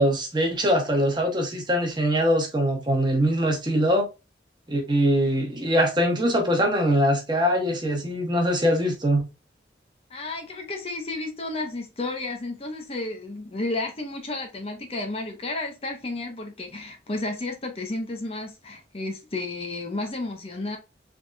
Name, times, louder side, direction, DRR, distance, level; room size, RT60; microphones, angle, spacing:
voice 1, 0.0-4.1 4.7-9.3, equal, 25° right, 1.0 m, -22 dB
voice 2, 10.1-20.8, left 2 dB, 30° left, 0.7 m, -32 dB
3.6 x 3.4 x 2.5 m
head